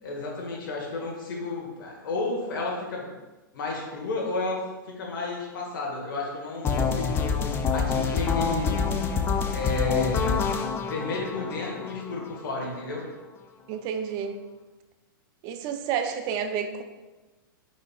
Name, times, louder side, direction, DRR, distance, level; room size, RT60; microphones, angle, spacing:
voice 1, 0.0-3.2 3.5-7.4 7.7-8.8 9.5-10.5 10.8-13.0, left 3 dB, 70° left, -1 dB, 1.2 m, -32 dB
sound 1, 6.6-12.6, left 5 dB, 20° left, 0.4 m, -26 dB
voice 2, 13.7-14.4 15.4-16.8, right 7 dB, 35° right, 7 dB, 0.4 m, -30 dB
4.9 x 4.2 x 2.3 m, 1.2 s
hypercardioid pair, 125°, 12 cm